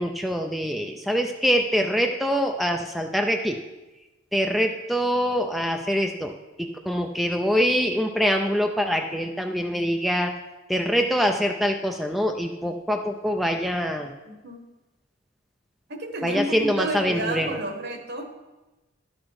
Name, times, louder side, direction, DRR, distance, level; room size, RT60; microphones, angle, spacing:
voice 1, 0.0-3.6 4.3-6.3 6.6-10.3 10.7-14.1 16.2-17.6, equal, ahead, 3 dB, 0.4 m, -24 dB
voice 2, 14.2-14.6 15.9-18.3, right 1 dB, 55° right, 5 dB, 1.3 m, -31 dB
12.0 x 6.1 x 4.8 m, 1.1 s
head